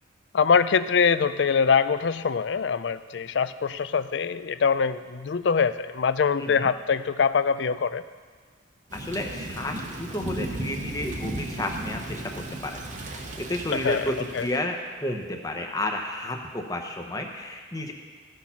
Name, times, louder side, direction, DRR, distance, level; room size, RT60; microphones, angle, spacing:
voice 1, 0.3-8.0 13.7-14.5, left 6 dB, 65° left, 14 dB, 0.4 m, -23 dB
voice 2, 6.4-6.7 8.9-12.2 12.6-17.9, left 1 dB, 20° left, 3 dB, 0.9 m, -31 dB
Thunder / Rain, 8.9-14.6, right 1 dB, 40° right, 1.0 m, -36 dB
14.5 x 6.4 x 5.8 m, 1.5 s
head